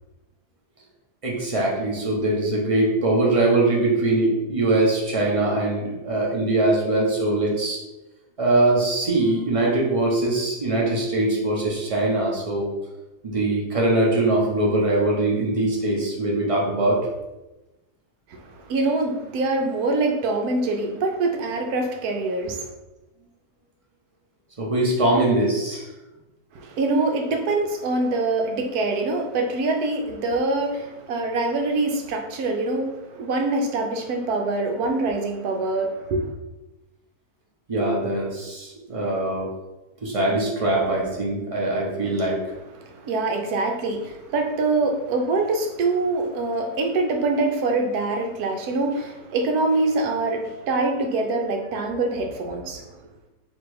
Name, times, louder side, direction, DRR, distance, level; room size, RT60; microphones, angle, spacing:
voice 1, 1.2-7.8 8.4-12.7 13.2-17.1 24.6-25.9 37.7-39.5 40.0-42.4, right 2 dB, 30° right, -3 dB, 0.6 m, -22 dB
voice 2, 18.3-22.7 26.5-36.3 42.8-52.9, right 3 dB, 70° right, 3 dB, 1.1 m, -24 dB
3.2 x 2.9 x 4.7 m, 1.0 s
omnidirectional pair, 1.7 m